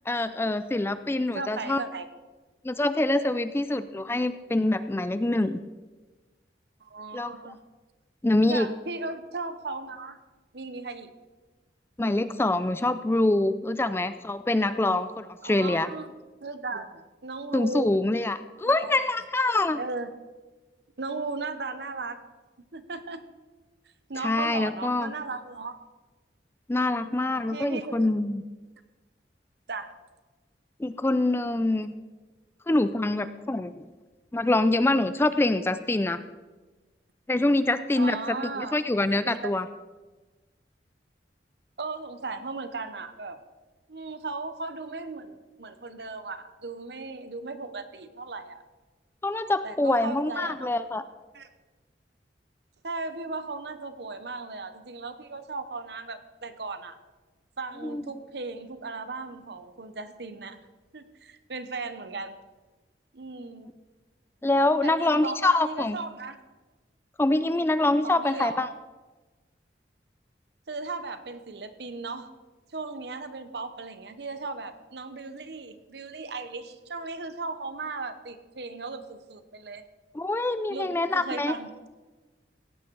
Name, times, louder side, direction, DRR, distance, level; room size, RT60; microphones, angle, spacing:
voice 1, 0.1-1.8 2.6-5.6 7.1-7.5 8.2-8.7 12.0-15.9 17.5-19.8 24.2-25.1 26.7-28.4 30.8-31.9 32.7-33.9 34.3-36.2 37.3-39.7 49.2-51.0 57.8-58.0 64.4-66.0 67.2-68.7 80.1-81.6, left 2 dB, 15° left, 12 dB, 0.4 m, -25 dB
voice 2, 1.3-2.1 6.8-7.6 8.5-10.2 10.5-11.1 15.4-16.1 16.4-17.9 18.7-19.0 19.7-20.1 21.0-22.2 22.7-23.3 24.1-25.8 26.9-28.1 29.7-29.9 38.0-38.8 39.2-39.5 41.8-43.4 43.9-48.6 49.6-50.7 51.3-51.5 52.8-57.0 57.6-60.6 60.9-62.4 63.1-63.7 64.8-66.4 68.0-68.7 70.7-72.3 72.7-79.8 80.7-81.7, right 3 dB, 65° right, 10 dB, 0.9 m, -36 dB
16.0 x 8.8 x 4.6 m, 1.2 s
head